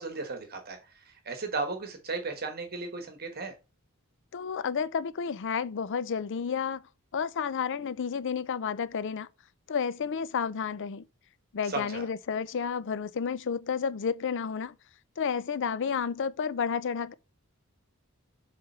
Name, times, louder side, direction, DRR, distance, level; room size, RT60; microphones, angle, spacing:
voice 1, 0.0-3.5 11.7-12.1, right 3 dB, 45° right, 1.2 m, -35 dB
voice 2, 4.3-6.8 7.1-9.3 9.7-11.0 11.5-14.8 15.2-17.1, left 6 dB, 60° left, 0.5 m, -31 dB
7.4 x 3.4 x 5.5 m
head